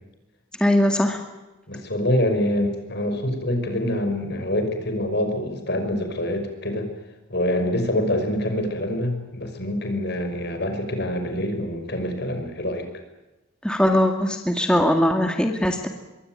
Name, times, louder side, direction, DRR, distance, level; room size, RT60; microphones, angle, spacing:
voice 1, 0.6-1.2 13.6-15.9, left 1 dB, 5° left, 4 dB, 2.0 m, -20 dB
voice 2, 1.7-6.9 7.3-13.0, left 1 dB, 55° left, 6 dB, 5.7 m, -25 dB
26.0 x 23.0 x 9.3 m, 1.0 s
head